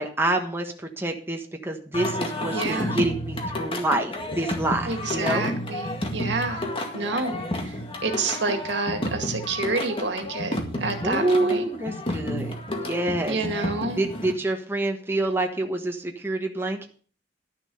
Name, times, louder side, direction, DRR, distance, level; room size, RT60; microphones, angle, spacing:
voice 1, 0.0-5.4 7.0-7.3 11.0-16.9, right 2 dB, 15° right, 3 dB, 1.2 m, -27 dB
Singing, 1.9-14.3, left 1 dB, 30° left, 2.0 m, -31 dB
voice 2, 2.5-3.0 4.9-6.6 6.9-11.6 13.3-14.1, right 3 dB, 75° right, 6 dB, 2.0 m, -29 dB
11.5 x 7.1 x 6.9 m, 0.42 s
head